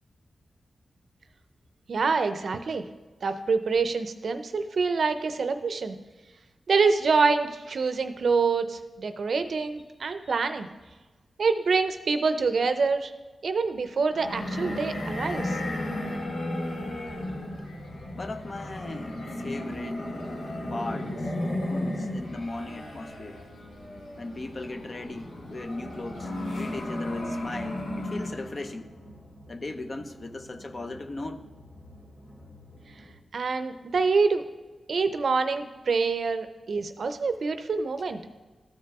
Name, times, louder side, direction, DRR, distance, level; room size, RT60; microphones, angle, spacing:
voice 1, 1.9-2.8 3.2-6.0 6.7-10.7 11.4-13.1 13.4-15.6 33.3-34.5 34.9-38.2, right 4 dB, 65° right, 9 dB, 0.5 m, -26 dB
sound 1, 14.1-28.6, left 1 dB, 85° left, 1.5 m, -34 dB
voice 2, 18.1-20.1 20.7-21.3 21.7-23.4 24.2-28.9 29.5-31.4, left 2 dB, 40° left, 8 dB, 0.6 m, -38 dB
sound 2, 25.9-33.2, equal, 55° left, 2.3 m, -50 dB
13.0 x 4.7 x 3.6 m, 1.2 s
cardioid pair, 80°, 0 cm